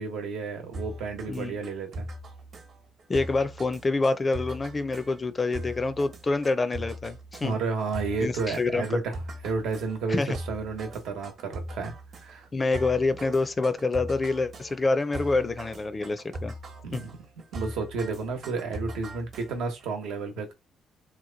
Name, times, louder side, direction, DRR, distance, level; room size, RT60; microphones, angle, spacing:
voice 1, 0.0-2.1 7.4-9.2 9.4-10.2 10.5-11.9 12.2-12.5 16.8-17.1 17.5-20.5, right 4 dB, 90° right, 1.0 m, -31 dB
sound 1, 0.7-19.8, right 1 dB, 55° right, 1.0 m, -41 dB
voice 2, 1.3-1.6 3.1-7.6 8.2-8.9 10.1-10.4 12.5-16.5 16.9-17.0, left 3 dB, 30° left, 0.5 m, -27 dB
3.0 x 2.2 x 3.9 m
cardioid pair, 90°, 0 cm